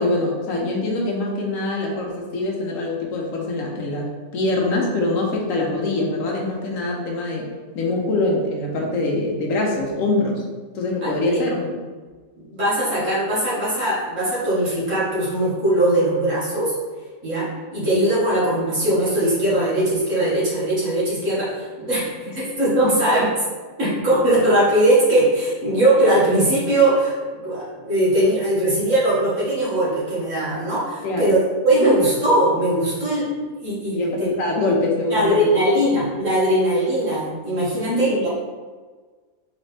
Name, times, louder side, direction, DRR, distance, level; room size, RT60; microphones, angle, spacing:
voice 1, 0.0-7.5 7.7-10.4 10.7-11.7 31.0-31.2 31.8-31.9 33.9-35.4 37.7-38.2, left 2 dB, 70° left, -1 dB, 1.2 m, -24 dB
voice 2, 11.0-11.4 12.4-16.8 17.2-23.3 23.8-31.4 31.6-33.3 33.6-34.3 35.1-38.3, right 1 dB, 60° right, -9 dB, 2.1 m, -20 dB
4.1 x 3.6 x 3.3 m, 1.4 s
omnidirectional pair, 1.5 m